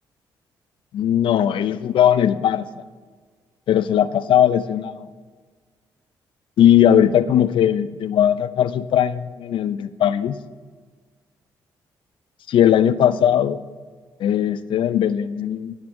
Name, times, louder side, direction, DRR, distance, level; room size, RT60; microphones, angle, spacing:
voice 1, 0.9-2.7 3.7-5.1 6.6-10.4 12.5-13.6 14.2-15.7, left 10 dB, 65° left, 15 dB, 0.4 m, -18 dB
8.8 x 8.3 x 2.6 m, 1.5 s
supercardioid pair, 50°, 9 cm